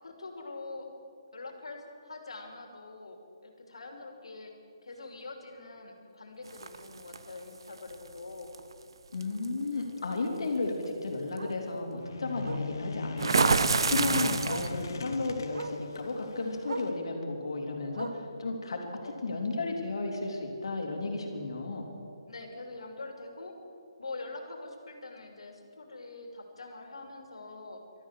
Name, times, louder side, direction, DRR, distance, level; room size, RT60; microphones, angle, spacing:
voice 1, 0.0-0.9 1.3-3.2 3.4-4.5 4.8-8.5 12.8-13.1 19.0-19.1 22.3-23.5 24.0-27.8, left 3 dB, 85° left, 3 dB, 2.8 m, -44 dB
Bark, 4.9-5.1 5.5-5.6 6.0-6.1 6.3-6.4 7.9-8.0 10.5-10.6 11.4-11.6 12.4-12.7 13.9-14.0 14.4-14.8 15.5-15.8 16.6-17.0 17.9-18.4 19.3-19.4, right 3 dB, 80° right, 1.3 m, -40 dB
sound 1, 6.6-7.2 8.5-8.7 9.2-9.5 13.2-14.9, right 4 dB, 60° right, 0.8 m, -26 dB
voice 2, 9.1-13.6 13.9-18.9 19.2-21.9, left 3 dB, 60° left, 2 dB, 3.0 m, -33 dB
sound 2, 11.9-16.9, left 4 dB, 40° left, 1.1 m, -40 dB
14.0 x 13.0 x 7.4 m, 2.5 s
hypercardioid pair, 175°, 3 cm